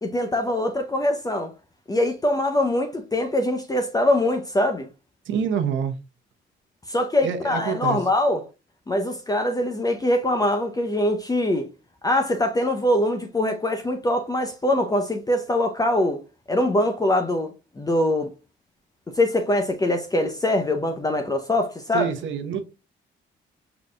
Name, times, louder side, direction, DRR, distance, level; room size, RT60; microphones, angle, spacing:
voice 1, 0.0-1.5 1.9-4.9 6.9-8.4 8.9-11.7 12.0-16.2 16.5-18.3 19.1-22.1, left 1 dB, 20° left, 0.7 m, -23 dB
voice 2, 5.2-6.0 7.2-8.0 21.9-22.6, right 7 dB, 75° right, 1.0 m, -26 dB
4.9 x 4.0 x 2.3 m
cardioid pair, 90°, 20 cm